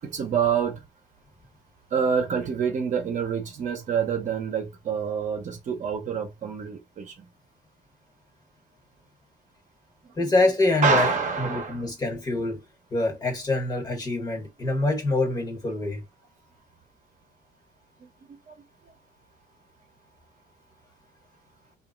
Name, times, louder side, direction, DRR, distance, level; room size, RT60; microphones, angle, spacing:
voice 1, 0.0-0.8 1.9-7.2 10.0-10.3 10.8-11.8 18.0-18.1 18.5-18.6, right 6 dB, 45° right, 0.8 m, -27 dB
voice 2, 10.2-11.1 11.4-12.6 12.9-16.0, left 2 dB, 25° left, 1.0 m, -25 dB
2.9 x 2.5 x 2.4 m
cardioid pair, 110°, 17 cm